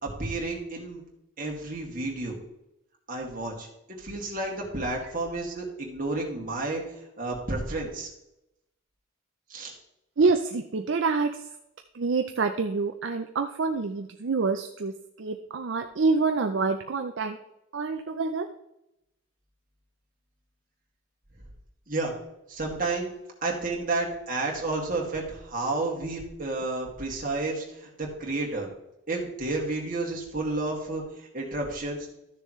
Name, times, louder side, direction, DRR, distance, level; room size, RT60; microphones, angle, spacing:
voice 1, 0.0-1.0 1.4-2.4 3.1-3.7 4.0-6.8 7.2-8.1 9.5-9.7 21.9-22.1 22.5-23.1 23.4-28.7 29.1-32.1, right 2 dB, 40° right, -1 dB, 2.2 m, -31 dB
voice 2, 10.2-11.3 12.0-14.9 15.2-17.4 17.7-18.5, right 4 dB, 60° right, 6 dB, 0.5 m, -26 dB
13.5 x 6.8 x 3.1 m, 0.86 s
head